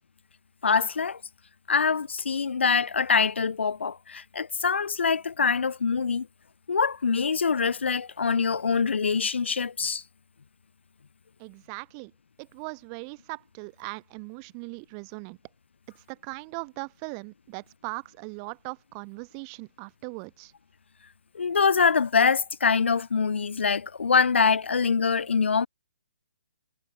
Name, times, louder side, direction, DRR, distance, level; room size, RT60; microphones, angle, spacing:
voice 1, 0.6-1.2 1.7-6.3 6.7-10.0 21.3-25.7, left 5 dB, 70° left, 2.5 m, -24 dB
voice 2, 11.4-12.1 12.4-15.4 15.9-20.5, right 40 dB or more, 20° right, 7.8 m, -39 dB
hypercardioid pair, 170°, 6 cm